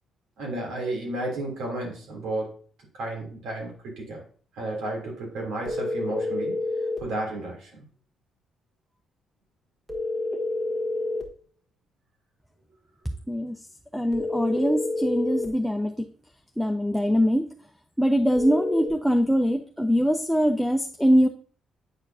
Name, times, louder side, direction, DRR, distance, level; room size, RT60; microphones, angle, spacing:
voice 1, 0.4-2.6 2.9-4.2 4.6-6.6 7.0-7.7, right 2 dB, 80° right, -1 dB, 2.9 m, -32 dB
sound 1, 5.7-7.1 9.9-11.3 14.1-15.5 18.4-18.9, left 2 dB, 15° right, 1.5 m, -29 dB
voice 2, 13.9-16.1 16.6-17.4 18.0-21.3, equal, ahead, 5 dB, 0.5 m, -23 dB
8.8 x 4.5 x 2.7 m, 0.43 s
cardioid pair, 90°, 0 cm